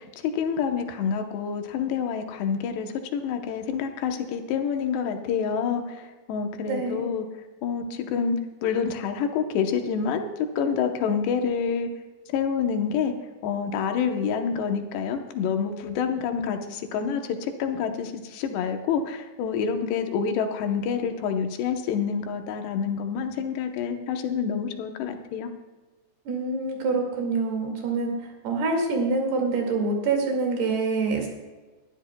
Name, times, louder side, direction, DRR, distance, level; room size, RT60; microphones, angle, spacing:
voice 1, 0.0-7.3 7.6-11.9 12.3-13.1 13.4-25.5, left 6 dB, 80° left, 5 dB, 3.1 m, -27 dB
voice 2, 6.7-7.1 26.3-28.1 28.4-31.3, right 3 dB, 70° right, 1 dB, 4.1 m, -26 dB
21.0 x 12.5 x 2.2 m, 1.3 s
omnidirectional pair, 4.8 m